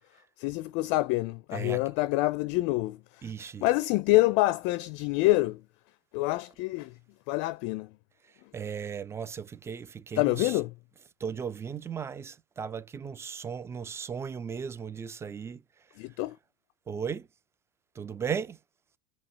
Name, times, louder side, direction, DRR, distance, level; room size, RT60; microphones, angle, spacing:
voice 1, 0.4-3.0 3.6-5.6 6.1-6.9 7.3-7.9 10.2-10.7 16.0-16.4, left 19 dB, 55° left, 0.4 m, -26 dB
voice 2, 1.5-1.8 3.2-3.6 8.5-10.6 11.2-15.6 16.9-17.3 18.0-18.6, right 7 dB, 15° right, 0.5 m, -36 dB
5.5 x 2.8 x 2.8 m
hypercardioid pair, 105°, 16 cm